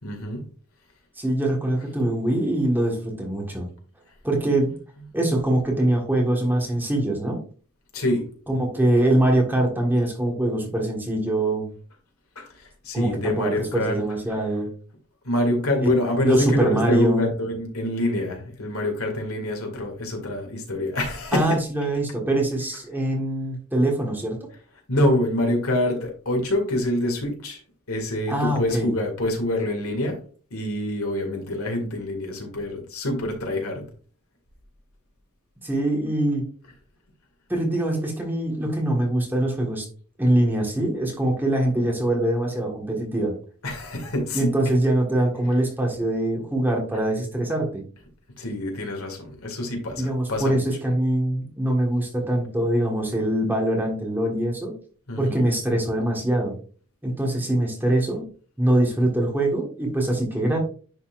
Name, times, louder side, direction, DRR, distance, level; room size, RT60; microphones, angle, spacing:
voice 1, 0.0-0.5 5.0-5.1 7.9-8.3 12.4-14.5 15.2-21.9 22.7-22.8 24.9-27.6 27.9-30.2 30.5-33.9 43.6-44.7 45.4-45.6 46.9-47.0 48.4-50.6 55.1-55.5, left 1 dB, 85° left, 2.2 m, -26 dB
voice 2, 1.2-3.7 4.2-4.7 5.1-7.4 8.5-11.7 12.9-14.7 15.8-15.9 16.2-17.3 21.3-24.4 28.3-28.9 35.6-36.5 37.5-39.8 40.2-43.3 44.3-47.8 50.0-54.8 55.2-56.5 57.0-58.3 58.6-60.6, right 1 dB, 10° right, 1.5 m, -23 dB
10.5 x 4.1 x 2.5 m
head